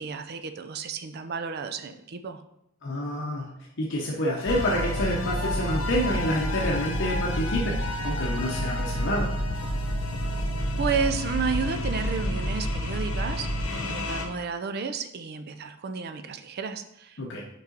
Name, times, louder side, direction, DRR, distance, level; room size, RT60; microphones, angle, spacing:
voice 1, 0.0-2.4 10.8-17.2, right 5 dB, 50° right, 8 dB, 0.5 m, -32 dB
voice 2, 2.8-3.5 3.8-7.8 8.0-9.3 17.2-17.4, equal, 60° left, -2 dB, 0.8 m, -28 dB
sound 1, 4.5-14.3, equal, 90° left, 0.9 m, -29 dB
5.4 x 4.7 x 3.9 m, 0.79 s
head